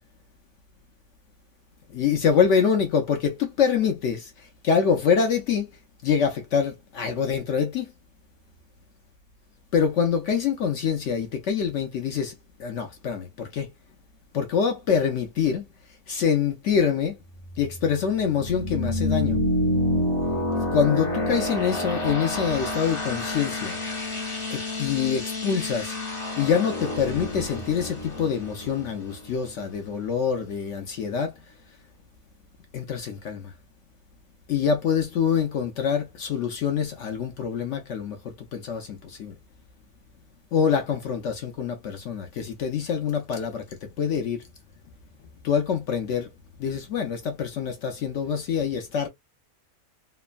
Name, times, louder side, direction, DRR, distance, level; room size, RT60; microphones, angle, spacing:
voice 1, 1.9-5.7 6.0-7.9 9.7-12.3 12.6-13.7 14.3-15.7 16.1-17.2 17.6-19.4 20.7-23.8 24.5-25.9 26.4-31.4 32.7-33.5 34.5-39.4 40.5-44.4 45.4-46.3 46.6-49.1, left 7 dB, 65° left, 0.8 m, -25 dB
sound 1, 17.3-29.9, left 1 dB, 25° left, 0.7 m, -29 dB
3.1 x 2.1 x 2.4 m
omnidirectional pair, 1.6 m